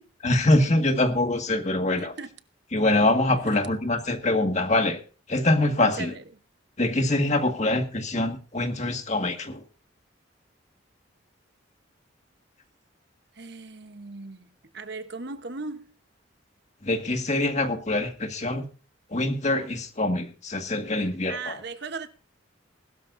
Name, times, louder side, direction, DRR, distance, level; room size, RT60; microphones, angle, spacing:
voice 1, 0.2-2.1 2.7-5.0 5.3-6.1 6.8-9.6 16.8-18.7 19.1-21.6, left 2 dB, 35° left, 1.8 m, -24 dB
voice 2, 2.0-2.3 3.5-3.6 6.0-6.2 13.4-14.5 14.7-15.9 21.3-22.1, right 4 dB, 60° right, 1.0 m, -37 dB
20.0 x 13.0 x 2.6 m
head